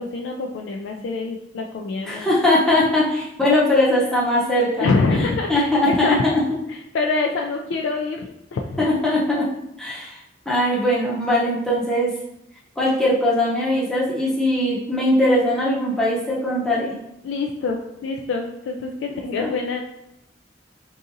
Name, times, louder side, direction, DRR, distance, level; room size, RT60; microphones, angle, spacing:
voice 1, 0.0-2.3 4.7-6.2 6.9-8.8 10.7-10.8 17.2-19.8, left 3 dB, 75° left, 1 dB, 0.3 m, -25 dB
voice 2, 2.0-4.9 5.5-6.4 8.8-9.5 9.8-10.2 10.5-12.1 12.8-16.9 19.4-19.5, left 1 dB, 5° left, -6 dB, 0.6 m, -20 dB
3.7 x 2.7 x 2.5 m, 0.85 s
head